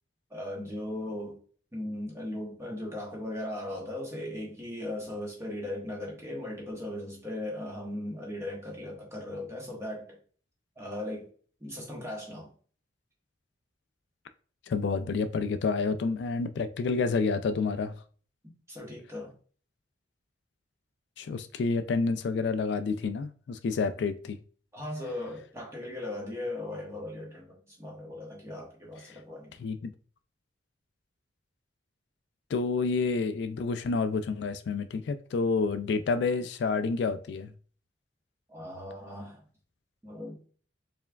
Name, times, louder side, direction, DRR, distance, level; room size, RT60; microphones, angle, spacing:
voice 1, 0.3-1.4 1.7-10.2 10.8-11.3 11.6-12.5 18.4-19.3 24.7-29.5 38.5-39.4 40.0-40.5, left 1 dB, 15° right, -2 dB, 1.3 m, -38 dB
voice 2, 14.7-17.9 21.2-24.4 29.6-29.8 32.5-37.5, left 4 dB, 70° left, 10 dB, 0.3 m, -29 dB
4.4 x 3.4 x 2.3 m, 0.43 s
head